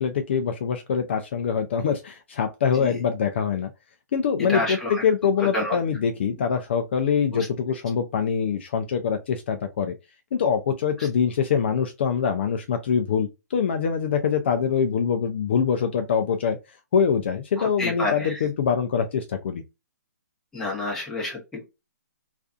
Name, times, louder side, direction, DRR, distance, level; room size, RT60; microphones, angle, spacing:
voice 1, 0.0-3.7 4.1-9.9 10.3-19.6, left 7 dB, 40° left, 0.3 m, -24 dB
voice 2, 4.5-5.0 5.5-5.8 7.3-7.5 17.6-18.4 20.5-21.6, left 2 dB, 5° left, 0.8 m, -29 dB
2.4 x 2.3 x 2.4 m
hypercardioid pair, 165°, 9 cm